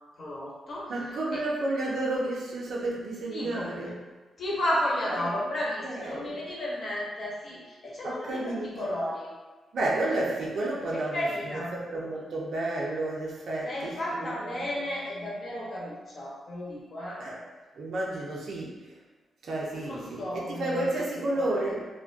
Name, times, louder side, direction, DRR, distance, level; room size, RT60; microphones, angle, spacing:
voice 1, 0.2-0.9 1.3-1.4 3.3-3.7 4.4-9.3 10.9-11.8 13.6-17.2 19.7-21.0 21.3-21.7, left 1 dB, 55° left, -5 dB, 0.7 m, -33 dB
voice 2, 0.9-4.0 5.0-5.3 5.8-6.4 8.0-8.9 9.7-11.2 11.7-14.8 17.2-17.4 17.8-18.8 19.4-21.9, right 2 dB, 70° right, -4 dB, 0.5 m, -31 dB
2.3 x 2.1 x 2.4 m, 1.3 s
cardioid pair, 95°, 0 cm